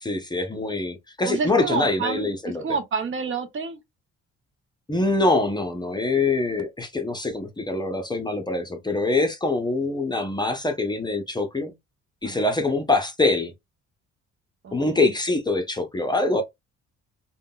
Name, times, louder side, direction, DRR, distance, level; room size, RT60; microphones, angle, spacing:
voice 1, 0.0-2.6 4.9-11.7 12.2-13.5 14.7-16.4, left 2 dB, 15° left, 0.6 m, -24 dB
voice 2, 1.2-2.3 2.6-3.8 12.2-12.5 14.6-15.0, right 5 dB, 45° right, 0.6 m, -29 dB
3.5 x 2.2 x 2.3 m
cardioid pair, 100°, 29 cm